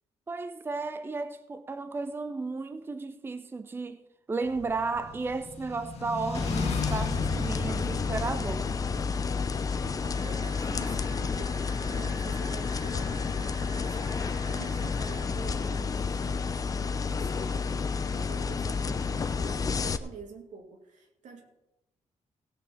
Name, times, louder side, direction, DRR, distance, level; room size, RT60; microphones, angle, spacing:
voice 1, 0.3-4.0 4.3-8.7, right 3 dB, 20° right, 0.6 m, -34 dB
sound 1, 4.4-9.9, left 4 dB, 60° left, 1.4 m, -36 dB
sound 2, 6.3-20.0, left 5 dB, 30° left, 0.6 m, -30 dB
voice 2, 9.8-21.5, right 5 dB, 90° right, 2.5 m, -47 dB
sound 3, 10.1-15.3, right 3 dB, 40° right, 2.8 m, -49 dB
17.0 x 6.6 x 5.8 m
wide cardioid pair, 165°, 12 cm